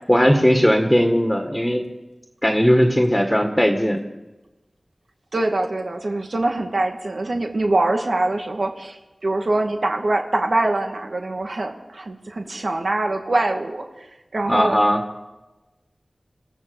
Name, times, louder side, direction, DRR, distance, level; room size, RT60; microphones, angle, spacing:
voice 1, 0.1-1.8 2.4-4.0 14.5-15.0, equal, 10° left, 4 dB, 2.0 m, -18 dB
voice 2, 5.3-9.0 9.2-13.8 14.3-14.8, right 2 dB, 70° right, 3 dB, 2.1 m, -23 dB
27.5 x 15.5 x 7.1 m, 1.1 s
wide cardioid pair, 65°, 0 cm